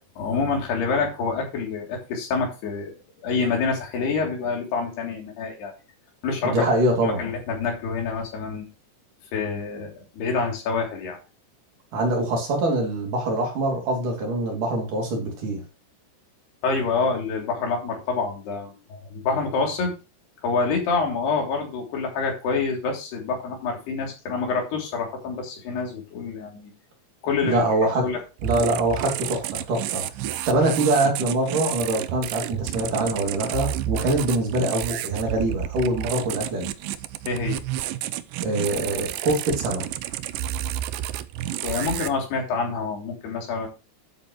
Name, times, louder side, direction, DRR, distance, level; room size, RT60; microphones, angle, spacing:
voice 1, 0.2-2.9 3.2-5.7 6.2-6.7 7.0-8.7 9.3-11.2 16.6-19.9 20.4-26.7 27.2-27.6 28.0-28.2 37.3-37.6 41.6-43.7, left 4 dB, 75° left, 0 dB, 5.3 m, -27 dB
voice 2, 6.4-7.2 11.9-15.6 27.4-28.1 28.4-36.7 38.4-39.8, right 2 dB, 55° right, 1 dB, 4.4 m, -24 dB
sound 1, 28.4-42.1, right 12 dB, 90° right, 1.9 m, -31 dB
12.0 x 8.5 x 3.2 m, 0.30 s
omnidirectional pair, 4.7 m